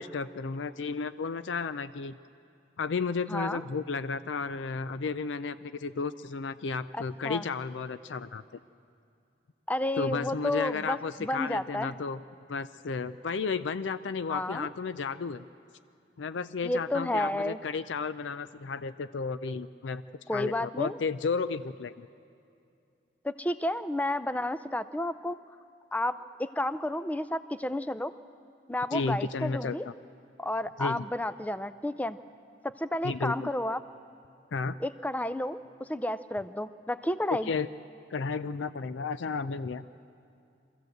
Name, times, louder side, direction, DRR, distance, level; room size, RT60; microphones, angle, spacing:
voice 1, 0.0-2.2 2.8-8.4 10.0-12.2 12.5-15.4 16.2-20.0 20.3-22.1 28.9-29.9 30.8-31.1 33.0-33.5 34.5-34.8 37.4-37.7 38.1-39.8, left 4 dB, 90° left, 13 dB, 0.5 m, -33 dB
voice 2, 3.3-3.6 6.9-7.4 9.7-12.0 14.3-14.7 16.6-17.6 20.3-21.0 23.2-25.4 25.9-28.1 28.7-29.8 30.4-32.2 32.6-33.8 34.8-37.5, left 1 dB, 10° left, 13 dB, 0.4 m, -31 dB
24.0 x 15.0 x 7.9 m, 2.5 s
head